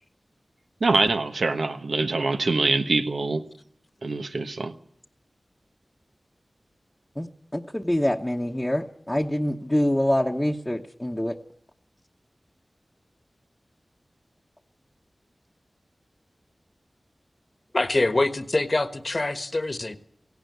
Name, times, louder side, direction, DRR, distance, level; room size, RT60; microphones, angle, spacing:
voice 1, 0.8-3.4 4.0-4.7, right 3 dB, 85° right, 1.3 m, -24 dB
voice 2, 7.5-11.3, left 1 dB, 10° left, 1.1 m, -25 dB
voice 3, 17.7-20.0, left 2 dB, 40° left, 1.3 m, -24 dB
17.5 x 16.5 x 9.4 m
wide cardioid pair, 70°, 0 cm